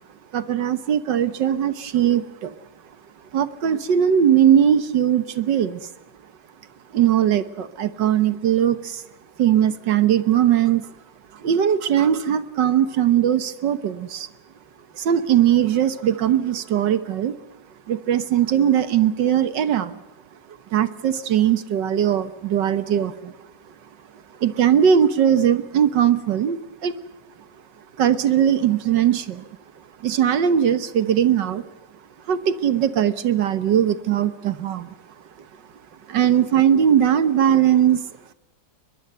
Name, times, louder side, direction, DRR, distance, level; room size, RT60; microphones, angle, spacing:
voice 1, 0.3-2.5 3.3-5.8 6.9-9.0 9.4-10.9 11.3-14.3 14.9-17.3 17.9-20.0 20.7-23.3 24.4-26.9 28.0-29.5 30.0-31.7 32.3-34.9 36.1-38.0, right 9 dB, 75° right, 13 dB, 1.8 m, -20 dB
22.5 x 21.5 x 7.9 m, 1.0 s
omnidirectional pair, 2.0 m